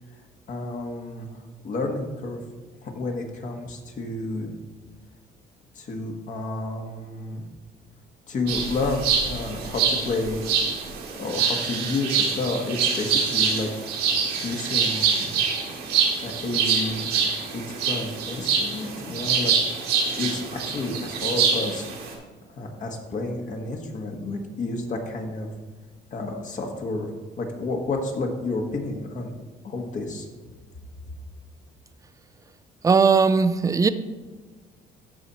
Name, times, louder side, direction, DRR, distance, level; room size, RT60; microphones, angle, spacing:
voice 1, 0.5-1.3 1.6-2.4 2.8-4.5 5.7-7.4 8.3-10.4 11.2-13.8 14.4-15.3 16.2-19.5 20.0-21.9 22.5-25.5 26.1-27.1 27.4-29.3 29.6-30.3, left 2 dB, 50° left, 2 dB, 1.6 m, -30 dB
sound 1, 8.5-22.1, right 6 dB, 85° right, 1.9 m, -25 dB
voice 2, 32.8-33.9, right 5 dB, 20° right, 12 dB, 0.4 m, -18 dB
13.0 x 4.4 x 4.1 m, 1.4 s
cardioid pair, 110°, 17 cm